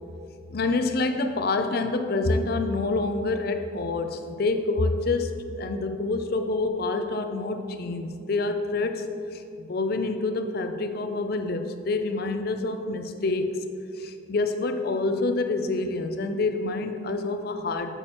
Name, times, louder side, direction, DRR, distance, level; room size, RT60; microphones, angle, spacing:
voice 1, 0.5-13.6 13.9-18.0, left 3 dB, 50° left, 7 dB, 0.5 m, -27 dB
8.4 x 8.0 x 3.0 m, 2.6 s
head